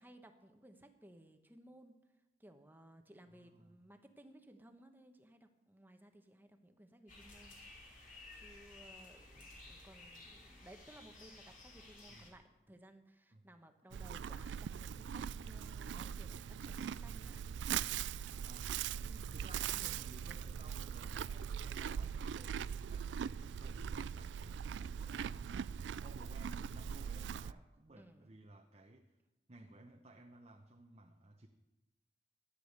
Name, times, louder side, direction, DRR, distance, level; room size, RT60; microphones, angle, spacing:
voice 1, 0.0-2.0 2.4-7.9 8.3-17.5 19.0-19.3 24.4-24.7 28.0-28.3, right 1 dB, 10° right, 6 dB, 1.1 m, -60 dB
voice 2, 3.3-3.8 9.3-9.7 12.1-12.3 13.3-13.4 13.8-14.0 15.4-15.7 18.4-18.8 19.3-29.1 29.5-31.5, right 1 dB, 35° right, 2 dB, 0.9 m, -58 dB
sound 1, 7.1-12.3, left 2 dB, 50° left, 3.5 m, -55 dB
Livestock farm animals working animals, 13.9-27.5, right 8 dB, 90° right, 0.3 m, -41 dB
14.0 x 10.0 x 6.6 m, 1.0 s
head